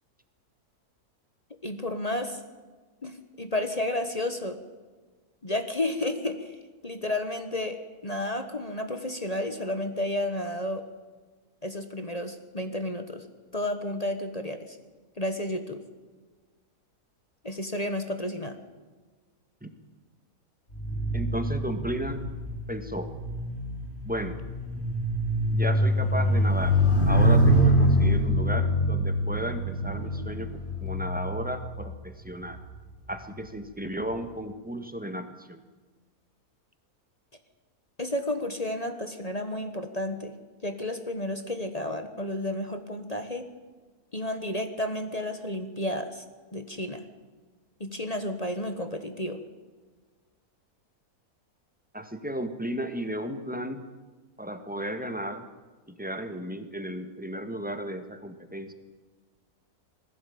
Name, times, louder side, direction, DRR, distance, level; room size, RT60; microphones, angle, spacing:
voice 1, 1.6-2.4 3.0-4.6 5.4-6.6 6.8-10.8 11.6-13.2 13.5-14.8 15.2-15.8 17.4-18.6 38.0-40.3 40.6-43.5 44.1-46.2 46.5-47.0 47.8-49.4, left 1 dB, 25° left, 7 dB, 1.4 m, -31 dB
sound 1, 20.7-32.4 33.1-33.4, equal, 40° left, 4.1 m, -25 dB
voice 2, 21.1-22.2 22.7-23.1 24.0-24.3 25.5-26.8 27.0-30.5 30.8-32.6 33.1-35.6 51.9-53.8 54.4-55.4 55.9-58.7, right 1 dB, 5° right, 8 dB, 1.5 m, -34 dB
20.5 x 15.5 x 8.7 m, 1.4 s
omnidirectional pair, 1.7 m